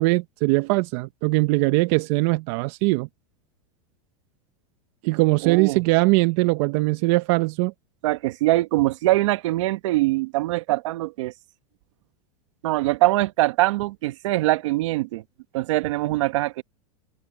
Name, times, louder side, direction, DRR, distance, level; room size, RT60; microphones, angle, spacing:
voice 1, 0.0-3.1 5.0-7.7, right 23 dB, 55° right, 0.8 m, -21 dB
voice 2, 5.4-5.8 8.0-11.3 12.6-15.2 15.5-16.6, right 18 dB, 70° right, 1.3 m, -23 dB
supercardioid pair, 130°, 16 cm